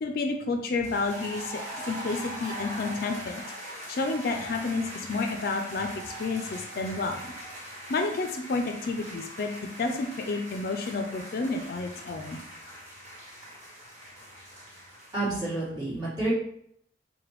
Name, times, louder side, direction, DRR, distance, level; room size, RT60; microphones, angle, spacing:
voice 1, 0.0-3.4 3.9-5.9 6.2-7.3 7.9-9.5 9.8-12.4, left 3 dB, 50° left, 4 dB, 0.4 m, -30 dB
sound 1, 0.8-15.4, right 1 dB, 40° right, 1.4 m, -41 dB
voice 2, 15.1-16.3, right 2 dB, 25° right, -8 dB, 1.5 m, -29 dB
4.9 x 2.2 x 3.0 m, 0.68 s
head